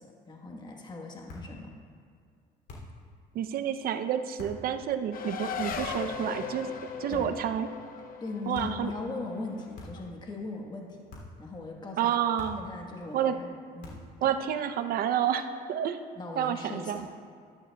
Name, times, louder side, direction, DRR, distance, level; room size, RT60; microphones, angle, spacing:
voice 1, 0.0-1.8 7.1-7.3 8.2-11.1 11.4-12.2 12.6-14.0 14.2-14.3 16.2-17.1, left 3 dB, 25° left, 0 dB, 1.3 m, -39 dB
sound 1, 1.3-1.6 2.7-3.0 4.4-4.7 5.7-6.1 7.1-7.5 8.5-8.9 9.7-10.2 11.1-11.4 12.4-12.8 13.8-14.2, left 2 dB, 80° left, 2.8 m, -45 dB
voice 2, 3.3-7.7 8.5-8.9 12.0-12.6 13.1-13.3 14.2-16.0 16.4-17.1, right 9 dB, 60° right, 9 dB, 0.6 m, -29 dB
Race car auto racing, 5.1-10.1, left 6 dB, 55° left, 0.8 m, -38 dB
13.0 x 11.5 x 2.3 m, 2.2 s
cardioid pair, 110°, 17 cm